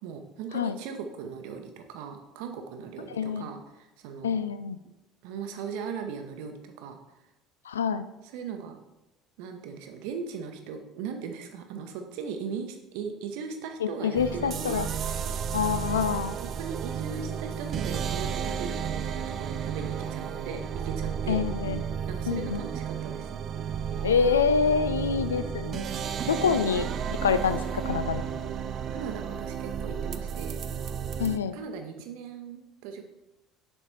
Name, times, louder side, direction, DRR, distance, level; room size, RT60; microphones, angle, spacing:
voice 1, 0.0-4.4 5.2-7.0 8.2-8.8 9.4-14.8 16.6-21.4 22.1-23.3 26.5-26.7 28.9-30.6 31.5-33.0, right 6 dB, 60° right, 5 dB, 0.8 m, -38 dB
voice 2, 3.1-3.5 4.2-4.8 7.7-8.0 13.8-14.9 15.5-16.3 21.3-21.8 22.3-22.6 24.0-25.9 26.3-26.9 27.2-28.3 31.2-31.6, left 6 dB, 75° left, 12 dB, 0.3 m, -26 dB
sound 1, 14.1-31.4, right 7 dB, 45° right, 0.4 m, -33 dB
6.7 x 4.4 x 4.5 m, 0.94 s
figure-of-eight pair, 60°, 0 cm